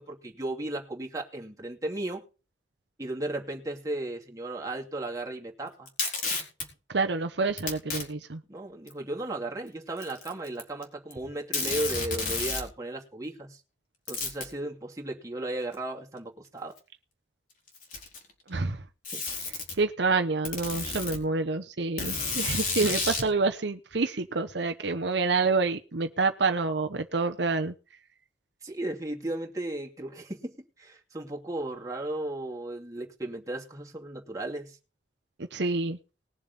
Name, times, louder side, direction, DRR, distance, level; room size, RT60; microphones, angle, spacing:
voice 1, 0.0-2.2 3.0-5.9 8.5-13.6 14.1-16.7 19.1-19.2 22.8-23.0 28.6-34.8, right 1 dB, 20° right, 2.7 m, -35 dB
Packing tape duct tape, 5.9-6.7 7.6-8.0 8.9-9.0 10.0-10.8 11.1-11.2 11.5-12.7 14.1-14.5 15.7-15.8 16.8-16.9 17.7-18.3 19.0-19.8 20.4-21.2 22.0-23.3, left 4 dB, 50° left, 4.1 m, -31 dB
voice 2, 6.9-8.4 18.5-18.8 19.8-27.7 35.5-36.0, right 3 dB, 70° right, 1.0 m, -27 dB
20.0 x 7.2 x 3.9 m
head